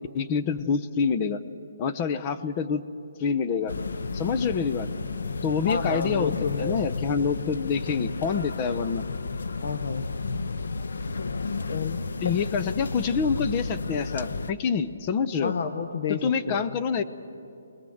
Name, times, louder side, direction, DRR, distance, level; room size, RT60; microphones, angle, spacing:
voice 1, 0.1-1.4 1.8-2.8 3.2-3.7 4.1-4.9 5.4-6.3 6.6-9.0 12.2-15.5 16.1-17.0, left 6 dB, 20° left, 10 dB, 0.7 m, -26 dB
sound 1, 3.7-14.5, left 4 dB, 75° left, 0.8 m, -32 dB
voice 2, 5.6-6.9 9.6-10.1 11.7-12.0 15.4-16.8, left 5 dB, 50° left, 8 dB, 0.9 m, -30 dB
25.0 x 20.5 x 7.9 m, 2.7 s
hypercardioid pair, 170°, 0 cm